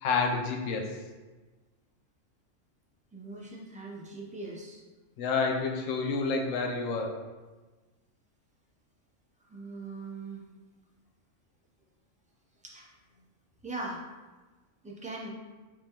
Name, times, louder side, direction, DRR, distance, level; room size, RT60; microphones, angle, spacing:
voice 1, 0.0-1.0 5.2-7.2, left 4 dB, 80° left, 2 dB, 1.0 m, -29 dB
voice 2, 3.1-4.8 9.5-10.4 12.6-12.9 13.6-14.0 14.8-15.3, right 2 dB, 10° right, -3 dB, 0.3 m, -40 dB
4.8 x 3.7 x 2.9 m, 1.3 s
omnidirectional pair, 1.3 m